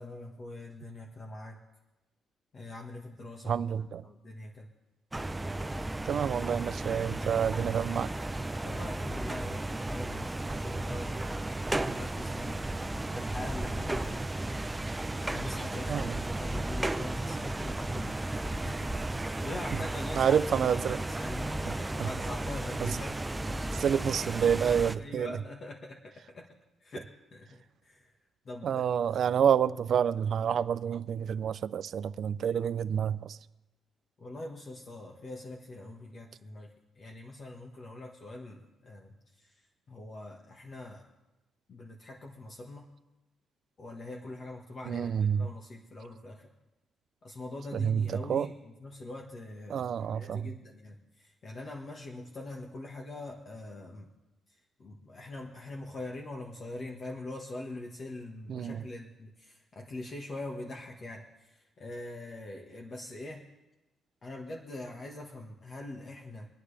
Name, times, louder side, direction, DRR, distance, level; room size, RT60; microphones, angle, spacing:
voice 1, 0.0-1.6 2.5-3.6 4.0-4.7 8.6-11.2 11.7-14.3 14.8-23.2 24.9-26.5 26.8-28.1 28.4-28.8 34.2-39.5 39.9-41.1 41.7-42.9 43.8-46.5 47.2-49.8 50.1-54.1 54.5-63.4 64.2-66.5, left 2 dB, 45° left, 1.6 m, -43 dB
voice 2, 3.5-4.0 6.1-8.1 15.9-16.2 20.2-21.0 21.7-22.1 22.8-22.9 23.7-25.4 28.6-33.4 44.9-45.5 47.7-48.5 49.7-50.5 58.5-58.8, right 8 dB, 60° right, 0.5 m, -28 dB
sound 1, 5.1-24.9, right 2 dB, 15° right, 0.6 m, -34 dB
25.0 x 9.5 x 3.4 m
cardioid pair, 90°, 0 cm